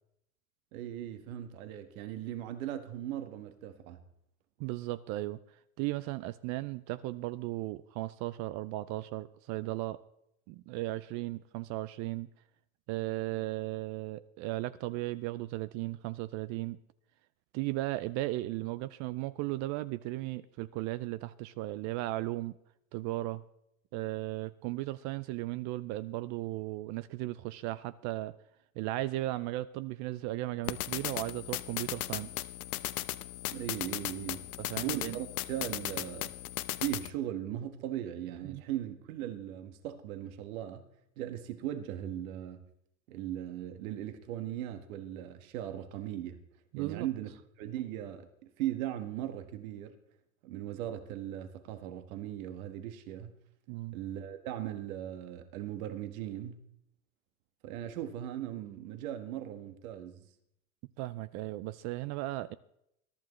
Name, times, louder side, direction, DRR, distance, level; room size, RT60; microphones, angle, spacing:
voice 1, 0.7-4.0 33.5-34.5 34.8-36.3 36.8-40.9 41.2-42.7 43.1-46.4 46.8-47.3 47.6-48.3 48.6-49.9 50.4-53.3 53.9-56.6 57.6-60.2, right 12 dB, 70° right, 1.6 m, -38 dB
voice 2, 4.6-5.4 5.8-10.0 10.5-12.3 12.9-16.8 17.5-22.5 22.9-23.4 23.9-28.3 28.8-32.5 34.6-35.2 38.4-38.6 46.7-47.1 53.7-54.0 61.0-62.6, right 17 dB, 40° right, 0.5 m, -36 dB
sound 1, 30.6-37.1, left 16 dB, 80° left, 0.8 m, -37 dB
22.0 x 11.5 x 3.2 m
hypercardioid pair, 110°, 43 cm